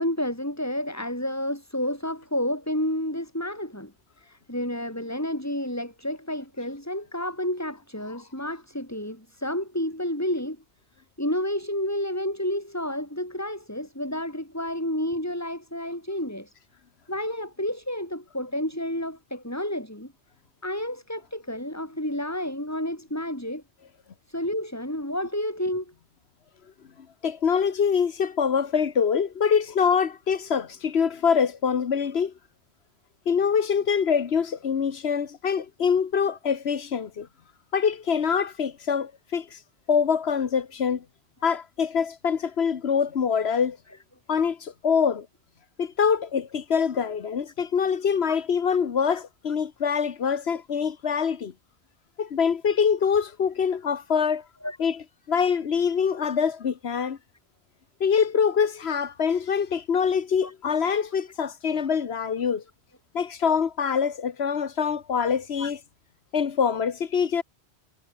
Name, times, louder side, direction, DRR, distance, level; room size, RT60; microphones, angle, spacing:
voice 1, 0.0-10.6 11.2-16.5 17.1-20.1 20.6-23.6 24.3-25.9 48.3-48.4 54.6-54.8 60.4-60.5 65.6-65.7, left 1 dB, 15° left, 5.6 m, -30 dB
voice 2, 27.2-32.3 33.3-37.3 37.7-39.6 39.9-41.0 41.4-43.8 44.3-45.3 45.8-51.5 52.2-54.4 54.8-55.0 55.3-57.2 58.0-62.6 63.1-65.8 66.3-67.4, left 6 dB, 70° left, 1.3 m, -24 dB
omnidirectional pair, 1.1 m